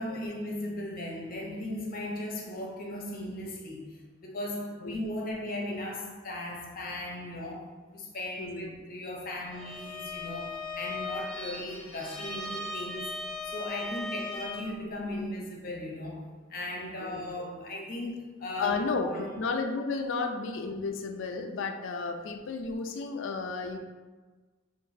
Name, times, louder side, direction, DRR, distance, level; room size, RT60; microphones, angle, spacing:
voice 1, 0.0-7.7 7.9-13.1 13.5-19.3, left 1 dB, 45° left, -1 dB, 0.8 m, -37 dB
voice 2, 8.4-8.8 17.0-17.5 18.6-23.8, left 4 dB, 65° left, 5 dB, 0.4 m, -33 dB
Bowed string instrument, 9.5-14.8, left 2 dB, 5° left, 0.9 m, -38 dB
5.8 x 2.6 x 2.6 m, 1.3 s
head